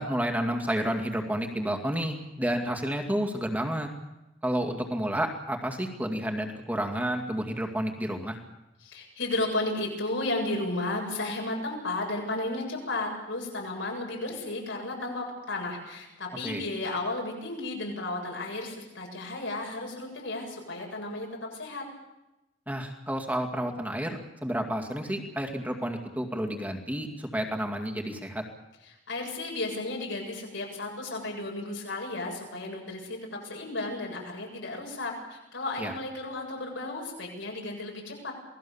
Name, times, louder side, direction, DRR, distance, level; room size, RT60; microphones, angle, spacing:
voice 1, 0.0-3.9 4.4-8.4 16.4-16.6 22.7-28.4 35.8-35.9, equal, 10° right, 3 dB, 2.3 m, -30 dB
voice 2, 8.8-21.8 29.1-38.3, left 2 dB, 85° left, 0 dB, 7.7 m, -33 dB
27.5 x 18.5 x 7.2 m, 0.96 s
head